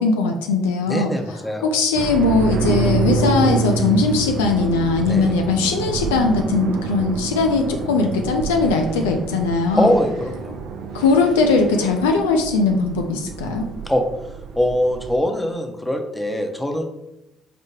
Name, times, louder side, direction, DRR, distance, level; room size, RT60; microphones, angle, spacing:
voice 1, 0.0-1.1 1.6-9.9 10.9-13.6, left 3 dB, 75° left, 4 dB, 0.3 m, -19 dB
voice 2, 0.9-1.7 5.0-5.4 9.8-10.6 13.9-14.0 14.6-16.8, left 1 dB, 10° left, 4 dB, 0.6 m, -22 dB
sound 1, 1.9-15.2, right 4 dB, 60° right, 0.4 m, -27 dB
4.9 x 2.1 x 3.0 m, 0.90 s
figure-of-eight pair, 50°, 0 cm